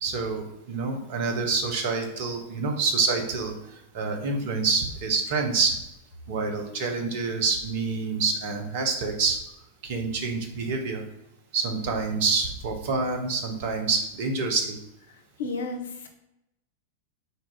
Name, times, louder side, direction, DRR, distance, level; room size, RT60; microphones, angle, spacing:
voice 1, 0.0-5.8 6.3-9.4 9.8-11.0 11.5-14.8, right 4 dB, 50° right, 4 dB, 0.8 m, -27 dB
voice 2, 15.4-16.1, left 3 dB, 65° left, 4 dB, 0.6 m, -32 dB
3.9 x 2.4 x 3.9 m, 0.86 s
figure-of-eight pair, 90°, 0 cm